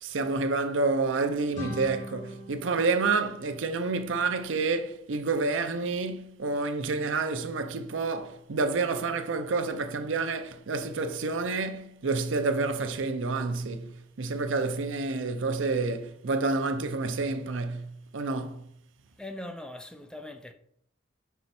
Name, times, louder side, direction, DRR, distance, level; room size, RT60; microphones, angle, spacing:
voice 1, 0.0-18.6, right 3 dB, 75° right, 0.6 m, -29 dB
sound 1, 1.5-4.3, left 1 dB, 40° left, 1.8 m, -43 dB
voice 2, 19.2-20.5, left 1 dB, 5° left, 0.4 m, -41 dB
5.2 x 4.5 x 4.2 m
head